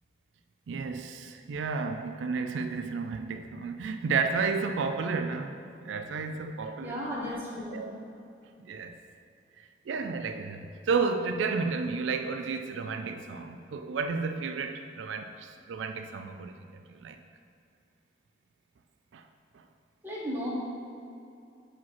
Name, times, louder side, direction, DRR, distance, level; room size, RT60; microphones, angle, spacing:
voice 1, 0.7-5.6 5.8-7.0 7.7-8.1 8.6-9.0 9.6-17.2 19.1-19.2, right 4 dB, 90° right, 8 dB, 0.4 m, -32 dB
voice 2, 6.8-7.8 20.0-20.5, equal, 10° right, -7 dB, 1.5 m, -35 dB
5.8 x 5.0 x 5.7 m, 2.6 s
head